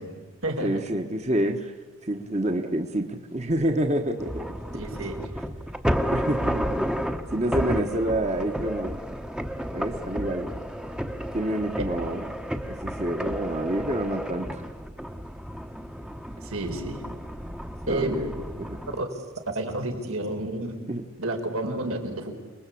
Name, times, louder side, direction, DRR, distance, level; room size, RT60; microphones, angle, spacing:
voice 1, 0.0-0.8 4.7-5.3 16.4-17.0 17.9-18.1 19.0-19.1 19.5-20.8 21.2-22.4, right 2 dB, 90° right, 3 dB, 4.5 m, -30 dB
voice 2, 0.6-1.7 2.0-4.5 6.1-6.8 7.3-9.0 9.7-10.5 11.3-12.3 12.7-14.6 17.9-18.3 18.6-18.8 20.9-21.0, right 1 dB, 30° right, 5 dB, 1.3 m, -28 dB
sound 1, 4.2-19.0, equal, 5° right, 0.9 m, -32 dB
28.5 x 20.5 x 8.5 m, 1.4 s
head